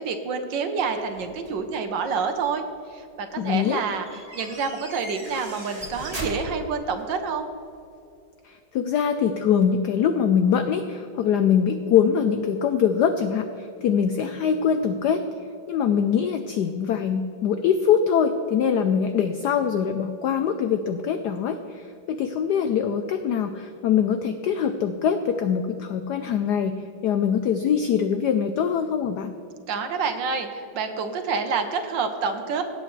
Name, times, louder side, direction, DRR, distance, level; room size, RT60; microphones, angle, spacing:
voice 1, 0.0-2.6 2.9-7.5 29.7-32.6, right 5 dB, 65° right, 6 dB, 1.4 m, -28 dB
sound 1, 0.8-1.7 3.5-7.1, right 1 dB, 20° right, 1.7 m, -38 dB
voice 2, 3.4-3.8 8.4-26.8 27.0-29.3, left 7 dB, 85° left, 8 dB, 0.9 m, -23 dB
17.5 x 8.1 x 3.2 m, 2.6 s
omnidirectional pair, 2.3 m